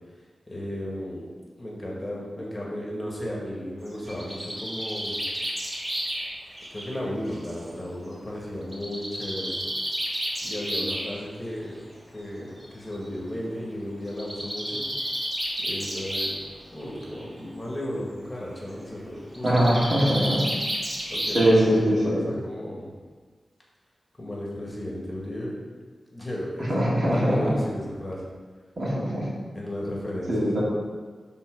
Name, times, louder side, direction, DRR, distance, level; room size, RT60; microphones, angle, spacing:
voice 1, 0.5-1.3 1.6-5.2 6.7-9.6 10.4-11.8 12.1-14.8 15.6-16.4 16.7-20.4 21.1-22.9 24.2-25.6 26.1-26.8 27.1-28.2 29.5-30.4, left 1 dB, 20° left, -4 dB, 1.8 m, -34 dB
Bird, 3.9-7.6 8.7-11.1 12.2-12.3 12.6-12.7 12.9-13.0 14.1-16.5 16.8-17.2 19.3-21.8, equal, 25° right, 1.9 m, -31 dB
voice 2, 19.4-20.4 21.3-22.2 26.7-27.5 28.8-29.3 30.3-30.6, equal, 50° right, -6 dB, 2.5 m, -22 dB
7.6 x 4.0 x 6.2 m, 1.5 s
wide cardioid pair, 95°, 0 cm